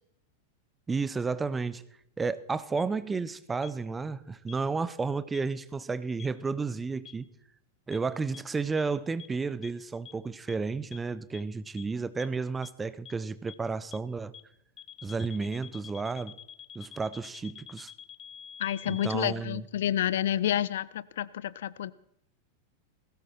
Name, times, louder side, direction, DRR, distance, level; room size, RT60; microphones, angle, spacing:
voice 1, 0.9-1.8 2.2-7.3 7.9-14.3 15.0-16.4 16.7-17.9 18.9-19.6, right 4 dB, 15° right, 0.7 m, -32 dB
sound 1, 2.8-2.9 3.6-3.7 4.5-4.6 5.3-5.4 6.2-6.3 7.0-7.1 7.9-8.0 8.3-8.4 8.8-8.9 9.2-9.3 9.6-9.7 10.0-10.1 10.5-10.6 10.9-11.0 11.3-11.4 11.8-11.9 12.2-12.3 12.6-12.7 13.0-13.1 13.5-13.6 13.9-14.0 14.3-14.4 14.8-19.2, left 9 dB, 30° left, 0.8 m, -46 dB
voice 2, 18.6-21.9, left 11 dB, 60° left, 0.6 m, -29 dB
19.5 x 16.5 x 4.5 m
figure-of-eight pair, 90°, 0 cm